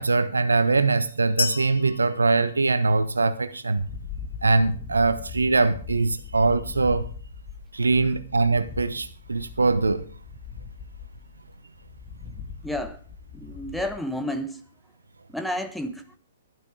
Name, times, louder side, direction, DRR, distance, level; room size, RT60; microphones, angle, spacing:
voice 1, 0.0-3.9 4.4-7.1 7.7-10.1, right 3 dB, 80° right, 1.3 m, -22 dB
sound 1, 1.4-3.3, left 6 dB, 65° left, 0.8 m, -33 dB
sound 2, 3.8-14.0, left 6 dB, 25° left, 1.8 m, -40 dB
voice 2, 12.6-13.0 13.3-14.6 15.3-16.0, left 1 dB, ahead, 1.2 m, -30 dB
12.5 x 12.0 x 5.0 m
figure-of-eight pair, 120°, 0 cm